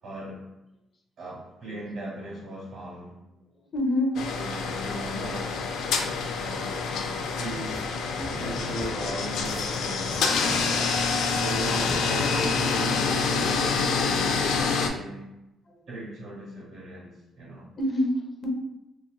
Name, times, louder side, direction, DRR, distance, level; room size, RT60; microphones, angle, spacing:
voice 1, 0.0-0.5 1.2-3.2 4.3-5.6 6.4-6.9 7.2-7.8 8.3-10.4 11.3-15.3 15.9-17.1 17.4-17.7, right 1 dB, 75° right, -7 dB, 1.1 m, -38 dB
voice 2, 3.7-4.2 8.9-9.1 15.7-15.8 17.8-18.5, left 1 dB, 35° left, 1 dB, 0.6 m, -28 dB
sound 1, 4.1-14.9, left 4 dB, 85° left, 0.3 m, -27 dB
sound 2, 7.2-7.8 8.2-9.0 9.4-12.6, equal, 25° right, 0.5 m, -42 dB
2.8 x 2.7 x 2.3 m, 0.91 s
cardioid pair, 145°, 0 cm